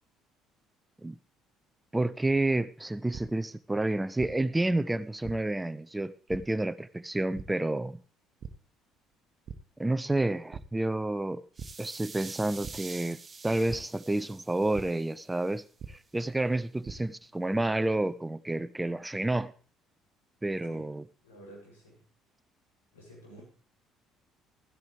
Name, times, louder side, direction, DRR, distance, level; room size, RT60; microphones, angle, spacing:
voice 1, 1.9-8.0 9.8-11.4 11.8-19.5 20.4-21.0, right 2 dB, 10° right, 0.5 m, -30 dB
sound 1, 3.1-3.2 4.2-4.3 5.2-5.3 6.3-6.4 7.3-7.4 8.4-8.5 9.0-9.1 9.5-9.6 10.5-10.6 11.6-11.7 12.6-12.7 13.7-13.8 14.7-14.8 15.8-15.9 16.6-16.9, right 6 dB, 45° right, 1.1 m, -40 dB
sound 2, 11.5-15.6, right 4 dB, 25° right, 0.9 m, -47 dB
voice 2, 21.2-22.0 22.9-23.4, right 1 dB, 75° left, 7.4 m, -51 dB
15.5 x 13.5 x 3.5 m
figure-of-eight pair, 50°, 0 cm